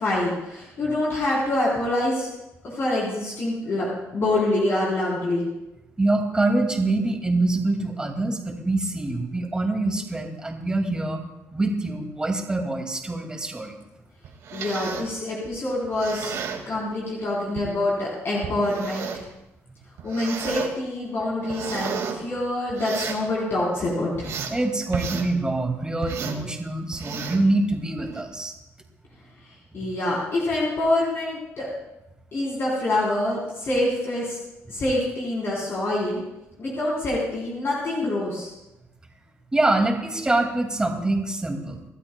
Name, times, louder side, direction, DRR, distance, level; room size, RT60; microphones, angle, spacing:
voice 1, 0.0-2.3 2.6-5.4 14.5-16.3 16.6-19.2 20.0-24.3 29.7-31.7 32.3-34.4 34.7-36.2 36.6-38.5, left 1 dB, 55° left, -5 dB, 4.0 m, -26 dB
voice 2, 6.0-11.2 11.5-13.8 24.5-28.5 39.5-41.9, right 2 dB, 15° right, 2 dB, 2.4 m, -25 dB
sound 1, 14.2-15.1 15.8-16.6 17.5-17.7 18.4-19.3 20.0-20.7 21.2-22.2 22.7-23.2 23.8-24.6 24.9-25.3 26.0-26.4 26.9-27.5 28.0-28.2, right 6 dB, 80° right, 2.2 m, -33 dB
26.5 x 12.5 x 2.3 m, 0.94 s
cardioid pair, 110°, 5 cm